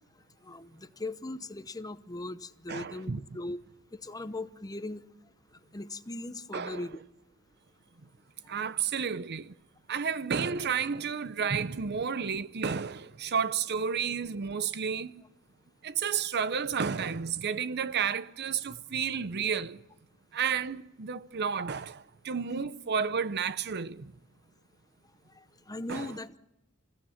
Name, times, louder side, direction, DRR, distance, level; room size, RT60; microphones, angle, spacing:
voice 1, 0.4-3.6 4.0-5.0 5.7-7.0 25.7-26.4, left 2 dB, 20° left, 0.8 m, -39 dB
voice 2, 2.7-3.2 6.5-6.8 8.5-9.5 9.9-15.2 15.8-19.8 20.3-24.1 25.9-26.1, right 6 dB, 50° right, 0.7 m, -31 dB
28.5 x 16.0 x 5.7 m
head